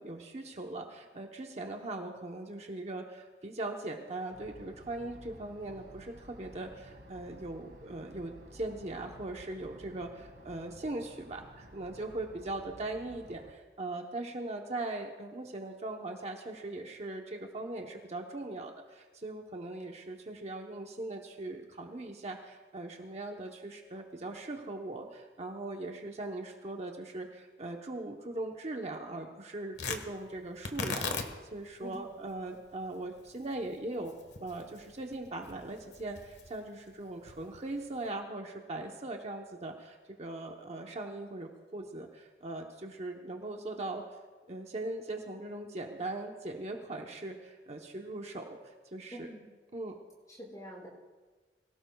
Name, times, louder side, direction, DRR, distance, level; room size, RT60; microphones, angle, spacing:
voice 1, 0.0-34.1 34.4-44.0 44.5-49.3 49.7-50.0, right 2 dB, 40° right, 2 dB, 0.9 m, -40 dB
sound 1, 4.3-13.5, right 1 dB, 65° right, 1.8 m, -53 dB
Tearing, 29.7-38.1, left 4 dB, 85° left, 1.4 m, -42 dB
voice 2, 49.1-49.4 50.3-50.9, equal, 20° left, -5 dB, 5.7 m, -45 dB
23.5 x 17.0 x 2.3 m, 1.3 s
head